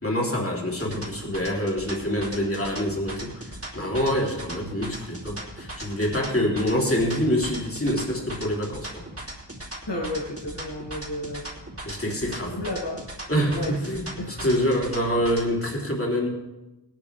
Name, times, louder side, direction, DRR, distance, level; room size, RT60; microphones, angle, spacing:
voice 1, 0.0-8.9 11.8-12.6 13.3-14.1 14.4-16.3, equal, 30° left, -2 dB, 3.3 m, -26 dB
sound 1, 0.7-15.5, right 1 dB, 35° right, 2.7 m, -39 dB
voice 2, 9.8-11.5 12.5-13.0 13.4-14.5, left 1 dB, 75° left, -3 dB, 2.7 m, -32 dB
18.0 x 10.5 x 3.5 m, 1.0 s
wide cardioid pair, 45°, 42 cm